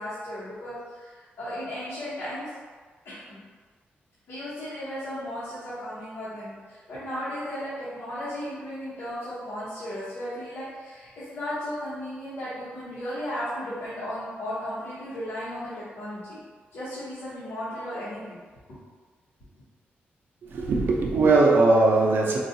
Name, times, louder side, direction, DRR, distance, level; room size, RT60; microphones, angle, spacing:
voice 1, 0.0-2.5 3.0-3.4 4.3-16.4 16.7-18.4 18.7-18.8, equal, 90° left, -12 dB, 0.9 m, -35 dB
voice 2, 20.4-22.4, right 3 dB, 65° right, -1 dB, 0.5 m, -20 dB
3.8 x 2.3 x 2.7 m, 1.5 s
wide cardioid pair, 130°, 4 cm